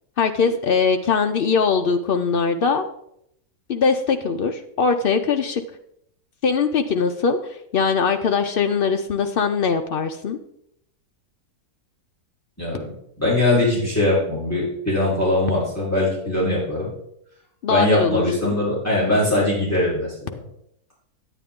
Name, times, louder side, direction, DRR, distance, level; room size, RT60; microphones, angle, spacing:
voice 1, 0.2-2.8 3.7-5.6 6.4-10.4 17.6-18.5, left 5 dB, 75° left, 7 dB, 0.5 m, -21 dB
voice 2, 12.6-12.9 13.2-16.9 17.7-20.4, left 1 dB, 10° left, -8 dB, 3.8 m, -21 dB
9.2 x 9.0 x 3.6 m, 0.75 s
omnidirectional pair, 1.6 m